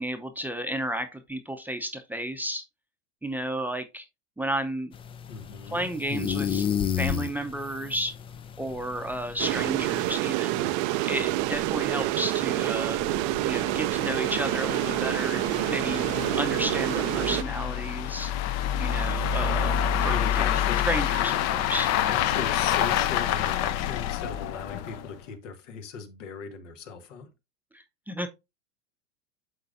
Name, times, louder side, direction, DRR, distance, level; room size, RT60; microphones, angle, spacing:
voice 1, 0.0-2.6 3.2-4.1 4.4-4.9 5.7-6.7 7.0-8.1 8.6-10.6 11.0-13.0 13.4-16.0 16.3-18.3 18.8-21.9 27.7-28.3, right 1 dB, 5° right, 0.7 m, -32 dB
sound 1, 4.9-10.2, left 8 dB, 15° left, 0.3 m, -32 dB
voice 2, 5.3-5.9 10.5-10.8 20.1-20.8 22.0-27.3, left 6 dB, 75° left, 1.7 m, -38 dB
sound 2, 8.8-8.9 9.1-9.2 9.7-9.8 10.1-10.2 10.8-25.2, left 10 dB, 45° left, 0.7 m, -28 dB
sound 3, 9.4-17.4, right 17 dB, 50° right, 0.5 m, -27 dB
11.5 x 4.0 x 2.6 m
hypercardioid pair, 115°, 37 cm